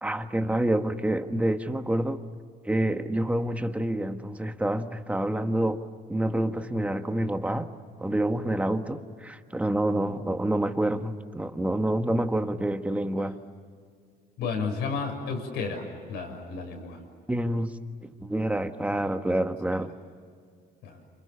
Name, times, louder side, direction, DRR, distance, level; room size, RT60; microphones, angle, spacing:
voice 1, 0.0-2.2 2.6-5.8 6.1-7.7 8.0-13.4 17.3-17.8 18.0-19.9, right 1 dB, 10° right, 7 dB, 1.5 m, -27 dB
voice 2, 14.4-17.0 20.8-21.0, left 4 dB, 85° left, 4 dB, 6.6 m, -32 dB
29.5 x 27.0 x 7.1 m, 2.1 s
cardioid pair, 110°, 17 cm